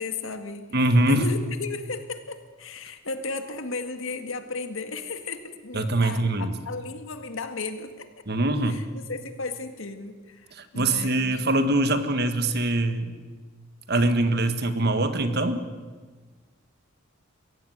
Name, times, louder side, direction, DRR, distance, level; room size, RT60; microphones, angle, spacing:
voice 1, 0.0-0.8 1.1-8.2 8.7-11.4, left 3 dB, 75° left, 8 dB, 2.0 m, -35 dB
voice 2, 0.7-1.3 5.7-6.5 8.3-8.8 10.6-13.1 13.9-15.7, right 2 dB, 50° right, 10 dB, 1.7 m, -23 dB
22.5 x 16.5 x 9.4 m, 1.4 s
head